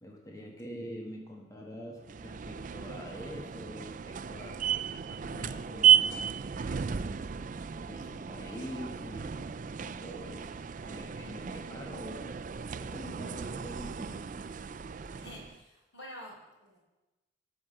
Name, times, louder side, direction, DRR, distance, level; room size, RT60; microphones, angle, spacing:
voice 1, 0.0-4.6 5.1-7.0 7.8-12.4 12.8-14.3, equal, 20° left, 0 dB, 1.3 m, -45 dB
sound 1, 2.1-15.6, right 8 dB, 45° right, 0.4 m, -32 dB
voice 2, 15.2-16.8, equal, 80° left, -3 dB, 4.8 m, -48 dB
17.5 x 5.9 x 6.5 m, 1.1 s
head